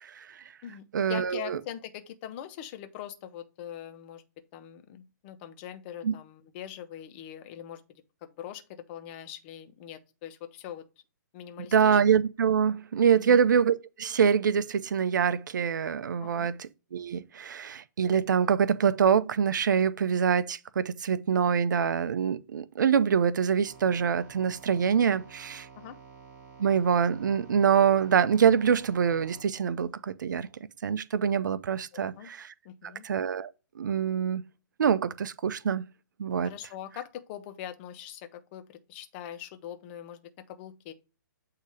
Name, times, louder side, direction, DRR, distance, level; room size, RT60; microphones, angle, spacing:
voice 1, 0.0-0.4 0.9-1.6 6.0-6.1 11.7-25.7 26.6-30.5 30.8-32.5 33.0-33.5 33.8-34.4 34.8-35.8 36.2-36.5, right 7 dB, 70° right, 0.5 m, -25 dB
voice 2, 0.6-4.2 4.5-10.8 11.3-12.0 13.1-13.4 16.2-16.5 25.8-26.0 31.9-32.3 32.6-33.1 36.4-40.2 40.5-40.9, left 10 dB, 35° left, 1.0 m, -42 dB
sound 1, 23.7-29.4, right 5 dB, 15° right, 2.6 m, -51 dB
8.2 x 2.8 x 4.7 m
hypercardioid pair, 140°, 10 cm